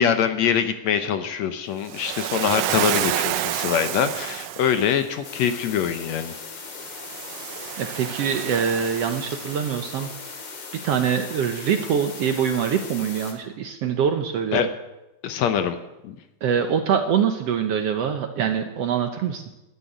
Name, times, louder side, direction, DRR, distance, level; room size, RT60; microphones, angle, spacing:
voice 1, 0.0-6.3 14.5-14.7 15.2-15.8 16.0-16.2, left 8 dB, 70° left, 9 dB, 1.9 m, -23 dB
Waves surf, 1.9-5.1 6.9-9.9, right 13 dB, 85° right, 2.3 m, -29 dB
sound 1, 5.2-13.3, left 4 dB, 50° left, 2.6 m, -38 dB
voice 2, 7.8-10.1 10.8-14.6 16.4-19.4, right 7 dB, 65° right, 7 dB, 1.7 m, -24 dB
12.5 x 9.7 x 9.1 m, 0.97 s
omnidirectional pair, 3.6 m